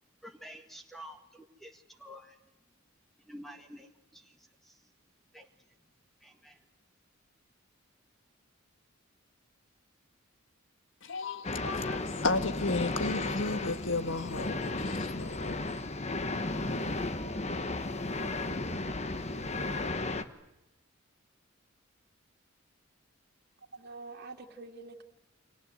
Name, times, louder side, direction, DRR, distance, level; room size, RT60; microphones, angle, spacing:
voice 1, 0.2-2.4 3.3-4.8 5.3-5.5 6.2-6.6, equal, ahead, 1.8 m, -49 dB
voice 2, 11.0-15.8, left 3 dB, 70° left, 1.7 m, -33 dB
sound 1, 11.4-20.2, left 2 dB, 35° left, 1.3 m, -34 dB
voice 3, 23.7-25.0, right 3 dB, 50° right, 2.5 m, -46 dB
30.0 x 24.5 x 7.9 m
head